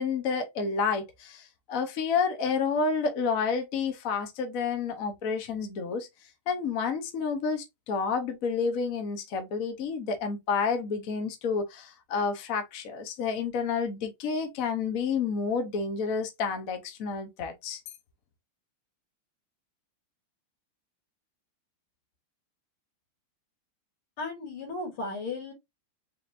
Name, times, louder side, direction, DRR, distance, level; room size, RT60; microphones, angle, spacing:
voice 1, 0.0-6.1 6.5-17.8, left 5 dB, 55° left, 1.0 m, -30 dB
voice 2, 24.2-25.5, left 3 dB, 75° left, 2.5 m, -35 dB
4.2 x 3.8 x 2.5 m
omnidirectional pair, 2.4 m